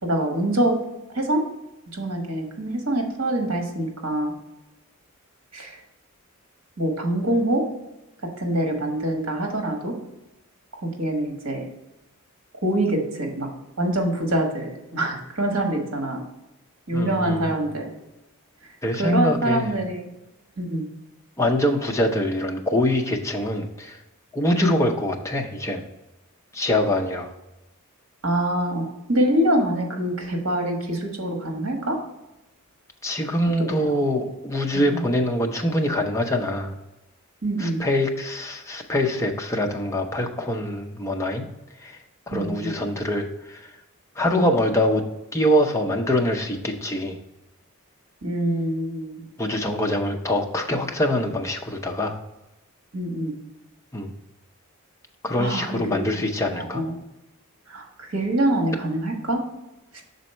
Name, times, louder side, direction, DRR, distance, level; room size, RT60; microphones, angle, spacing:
voice 1, 0.0-0.7 1.1-1.4 1.9-4.3 5.5-5.8 6.8-7.6 8.4-9.9 10.8-11.6 12.6-13.5 13.8-16.2 16.9-17.9 19.0-20.0 20.6-20.8 24.6-24.7 28.2-32.0 33.8-33.9 34.7-35.0 37.4-37.8 42.3-42.7 44.3-44.4 48.2-49.3 52.9-53.3 55.4-56.0 56.5-56.9 57.7-59.4 59.9-60.0, right 1 dB, 65° right, 2 dB, 1.4 m, -25 dB
voice 2, 16.9-17.5 18.8-19.7 21.4-24.0 24.3-25.8 26.5-27.3 33.0-36.7 37.6-41.5 41.8-42.0 42.3-43.7 44.2-45.0 45.3-47.2 49.4-52.2 53.9-54.1 55.2-56.8, left 1 dB, 15° left, 2 dB, 0.6 m, -24 dB
6.3 x 4.0 x 4.3 m, 0.98 s
head